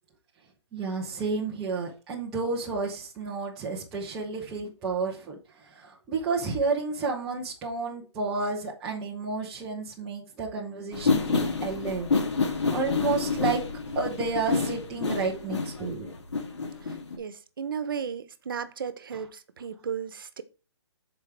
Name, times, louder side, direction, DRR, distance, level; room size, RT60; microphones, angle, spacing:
voice 1, 0.7-12.1 12.4-13.6 14.0-16.1, right 4 dB, 5° right, 0.3 m, -31 dB
sound 1, 10.9-17.2, left 4 dB, 75° left, 2.2 m, -28 dB
voice 2, 16.8-20.4, right 7 dB, 50° right, 0.8 m, -35 dB
14.0 x 4.7 x 3.3 m
hypercardioid pair, 175°, 15 cm